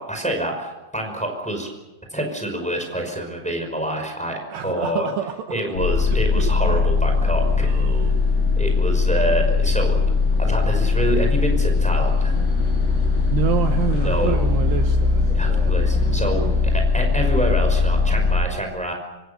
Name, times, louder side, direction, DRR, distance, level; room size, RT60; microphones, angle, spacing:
voice 1, 0.0-1.7 2.1-5.1 5.5-7.7 8.6-10.0 10.4-12.4 14.0-14.4 15.3-18.9, right 1 dB, ahead, 3 dB, 4.9 m, -27 dB
voice 2, 4.5-5.6 6.1-6.9 7.6-8.3 13.1-15.7, right 10 dB, 70° right, 6 dB, 2.9 m, -28 dB
sound 1, 5.8-18.4, left 4 dB, 55° left, 10.0 m, -20 dB
26.0 x 25.5 x 7.0 m, 1.1 s
omnidirectional pair, 5.6 m